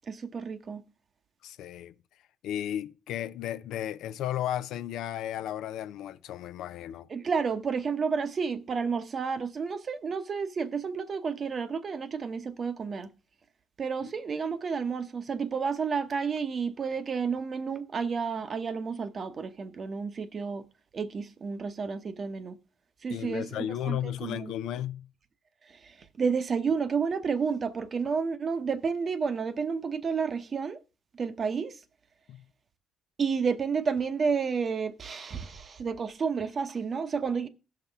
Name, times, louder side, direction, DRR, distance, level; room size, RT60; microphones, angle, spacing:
voice 1, 0.1-0.8 7.1-13.1 13.8-20.7 20.9-22.6 23.0-24.5 25.7-30.8 31.1-31.8 33.2-37.5, right 5 dB, 45° right, 0.8 m, -31 dB
voice 2, 1.4-1.9 2.4-7.1 14.0-14.1 23.1-25.1 32.3-32.4, left 11 dB, 85° left, 0.4 m, -34 dB
16.0 x 5.7 x 3.4 m
cardioid pair, 90°, 0 cm